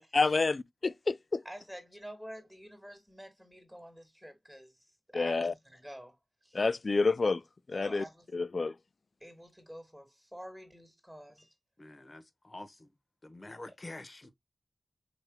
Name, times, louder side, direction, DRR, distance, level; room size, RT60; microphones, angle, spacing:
voice 1, 0.0-1.4 5.1-5.5 6.5-7.4 7.7-8.0 8.3-8.7, left 3 dB, 55° left, 0.4 m, -29 dB
voice 2, 1.5-4.7 5.1-6.1 6.4-6.6 7.7-8.2 9.2-11.5, equal, 5° right, 1.7 m, -48 dB
voice 3, 11.8-12.9 13.2-14.3, left 2 dB, 40° left, 1.1 m, -47 dB
5.0 x 3.1 x 2.2 m
cardioid pair, 45°, 0 cm